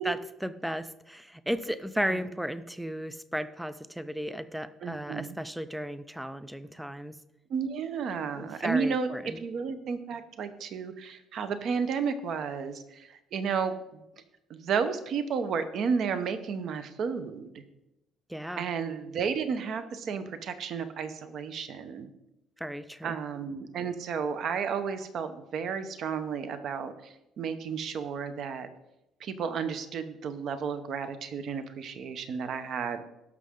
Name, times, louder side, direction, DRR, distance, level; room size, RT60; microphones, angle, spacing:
voice 1, 0.0-7.2 8.4-9.4 18.3-18.7 22.6-23.2, equal, ahead, 14 dB, 0.3 m, -35 dB
voice 2, 4.8-5.3 7.5-9.1 9.4-14.0 14.5-17.6 18.6-22.1 23.0-28.7 29.2-33.0, right 6 dB, 45° right, 10 dB, 0.8 m, -32 dB
17.0 x 6.3 x 3.7 m, 0.91 s
cardioid pair, 180°, 0 cm